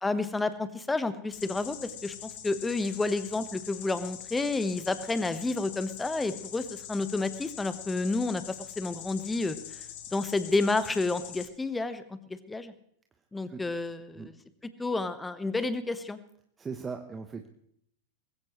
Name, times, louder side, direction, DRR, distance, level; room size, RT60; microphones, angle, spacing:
voice 1, 0.0-8.4 8.8-9.8 10.1-12.7 13.3-14.3 14.8-16.2, left 3 dB, 10° left, 13 dB, 1.3 m, -30 dB
sound 1, 1.3-11.4, left 10 dB, 50° left, 2.2 m, -43 dB
voice 2, 16.6-17.5, right 5 dB, 20° right, 6 dB, 1.1 m, -38 dB
20.5 x 16.5 x 3.2 m, 0.68 s
figure-of-eight pair, 95°, 0 cm